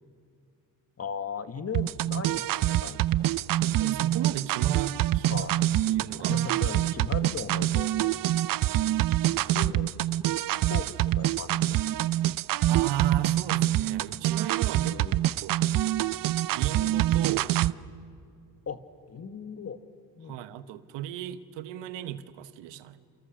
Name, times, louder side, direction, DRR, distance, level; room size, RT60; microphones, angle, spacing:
voice 1, 1.0-3.2 3.6-3.7 5.3-5.6 6.2-8.4 9.5-9.9 10.3-10.4 10.7-12.0 14.8-15.3 18.7-18.8 19.1-19.8 20.2-20.4, left 6 dB, 35° left, 10 dB, 1.6 m, -38 dB
sound 1, 1.7-17.7, right 14 dB, 50° right, 0.6 m, -26 dB
voice 2, 3.8-5.5 5.9-6.4 12.7-15.0 15.4-15.5 16.5-17.6 20.2-23.0, right 11 dB, 80° right, 13 dB, 1.2 m, -35 dB
29.0 x 27.5 x 6.4 m, 2.4 s
supercardioid pair, 75°, 43 cm